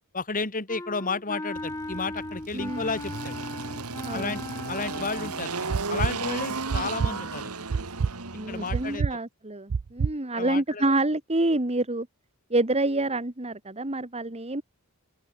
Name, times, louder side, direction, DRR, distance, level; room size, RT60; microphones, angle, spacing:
voice 1, 0.1-3.4 4.1-4.4 4.7-5.5 5.9-7.5 8.5-9.1 10.3-10.8, left 4 dB, 40° left, 3.2 m, -32 dB
Wind instrument woodwind instrument, 0.7-5.5, left 1 dB, 15° left, 0.9 m, -37 dB
Engine, 1.5-9.0, right 4 dB, 85° right, 2.5 m, -35 dB
voice 2, 2.5-2.9 4.0-4.4 8.3-12.1 12.5-14.6, right 2 dB, 30° right, 1.8 m, -27 dB
sound 1, 5.7-6.1 6.7-7.1 7.7-8.1 8.7-9.1 9.7-10.1, right 5 dB, 70° right, 0.5 m, -26 dB
head